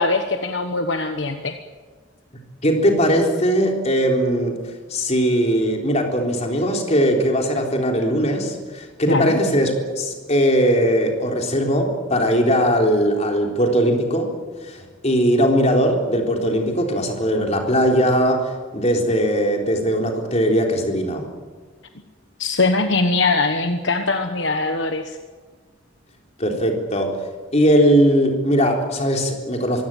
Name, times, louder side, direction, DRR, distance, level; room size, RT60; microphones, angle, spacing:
voice 1, 0.0-1.6 9.1-9.4 22.4-25.2, left 3 dB, 60° left, 7 dB, 1.3 m, -21 dB
voice 2, 2.6-4.6 4.9-14.3 14.6-21.3 26.4-27.1 27.5-29.8, equal, 35° left, 2 dB, 3.8 m, -19 dB
24.0 x 16.5 x 9.1 m, 1.4 s
head